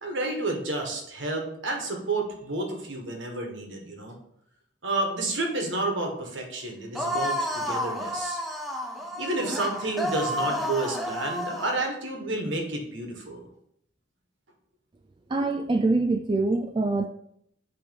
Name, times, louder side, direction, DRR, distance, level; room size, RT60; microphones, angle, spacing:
voice 1, 0.0-4.1 4.8-8.4 9.2-13.4, right 2 dB, 70° right, 2 dB, 1.5 m, -30 dB
sound 1, 6.9-11.8, left 1 dB, ahead, 0.7 m, -31 dB
voice 2, 15.3-17.1, right 3 dB, 25° right, 5 dB, 0.3 m, -24 dB
8.0 x 3.4 x 5.3 m, 0.72 s
head